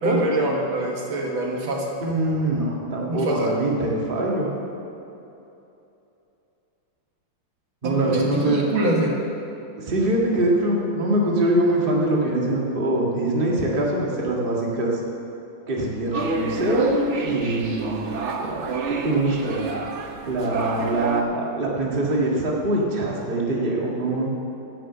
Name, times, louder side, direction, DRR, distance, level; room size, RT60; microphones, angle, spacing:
voice 1, 0.0-2.0 3.1-3.5 7.8-9.1, right 1 dB, 70° right, -1 dB, 2.3 m, -25 dB
voice 2, 2.0-4.5 7.8-8.7 9.8-15.0 15.7-18.1 18.4-18.8 19.0-19.7 20.3-24.3, right 1 dB, 25° right, -3 dB, 1.8 m, -23 dB
sound 1, 16.1-21.2, right 4 dB, 55° right, 0.8 m, -29 dB
14.5 x 6.4 x 7.7 m, 2.8 s
omnidirectional pair, 2.3 m